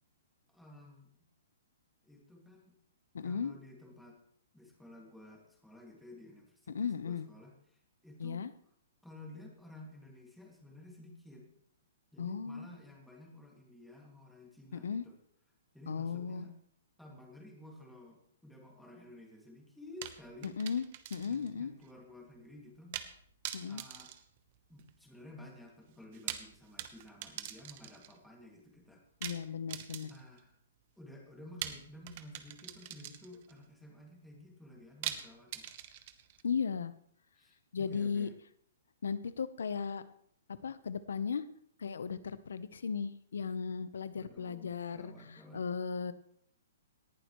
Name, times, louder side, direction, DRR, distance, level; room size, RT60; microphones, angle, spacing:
voice 1, 0.5-1.1 2.0-2.8 3.2-4.2 4.5-8.5 9.0-11.5 12.1-15.2 15.7-16.5 17.0-20.6 21.3-23.0 23.7-24.1 24.7-29.0 30.0-30.6 31.0-35.7 37.4-38.3 44.1-45.7, left 1 dB, ahead, 0 dB, 2.2 m, -53 dB
voice 2, 3.1-3.5 6.7-7.2 8.2-8.5 12.2-12.7 14.7-15.0 15.9-16.5 20.4-20.8 21.1-21.7 23.5-23.8 29.2-30.1 36.4-36.9 37.7-38.3 39.0-40.0 40.6-41.4 41.8-45.1 45.5-46.1, left 6 dB, 85° left, 15 dB, 0.8 m, -36 dB
sound 1, 20.0-21.5 21.8-21.9 22.9-23.2 23.4-25.0 26.0-28.2 29.2-30.4 31.6-33.5 35.0-36.4, right 12 dB, 40° right, 1.0 m, -43 dB
18.5 x 11.0 x 3.1 m, 0.65 s
hypercardioid pair, 160°, 0 cm